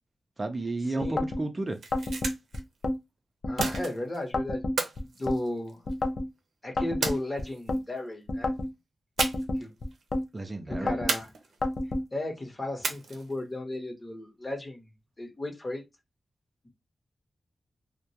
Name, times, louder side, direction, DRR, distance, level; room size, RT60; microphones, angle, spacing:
voice 1, 0.4-1.8 10.3-10.9, right 2 dB, 30° right, 0.4 m, -32 dB
voice 2, 0.9-1.2 3.5-4.6 5.0-5.8 6.6-8.5 9.6-9.7 10.7-11.3 12.1-14.9 15.2-15.8, left 1 dB, 30° left, 0.9 m, -35 dB
sound 1, 1.0-1.4 1.9-3.0 3.4-3.9 4.3-5.4 5.9-6.3 6.8-7.8 8.3-8.7 9.2-10.2 10.7-11.1 11.6-12.0, left 2 dB, 60° left, 0.4 m, -29 dB
sound 2, 1.6-2.6 3.6-4.2 4.8-6.0 7.0-7.8 9.2-9.6 9.9-10.0 11.1-11.8 12.8-13.4, right 4 dB, 85° right, 0.5 m, -33 dB
2.3 x 2.1 x 2.7 m
cardioid pair, 70°, 0 cm